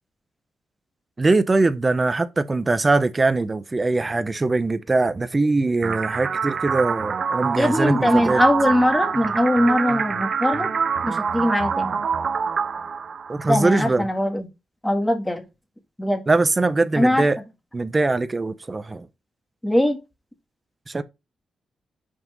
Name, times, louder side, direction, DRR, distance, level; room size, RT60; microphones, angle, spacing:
voice 1, 1.2-8.4 13.3-14.1 16.3-17.4 17.7-19.1 20.9-21.0, right 3 dB, 25° right, 0.7 m, -21 dB
sound 1, 5.8-13.8, right 6 dB, 50° right, 0.4 m, -25 dB
voice 2, 7.6-10.7 11.0-12.0 13.5-14.5 14.8-15.4 16.0-16.2 17.0-17.3 19.6-20.0, left 1 dB, 10° left, 1.6 m, -21 dB
5.9 x 5.5 x 5.3 m
cardioid pair, 110°, 0 cm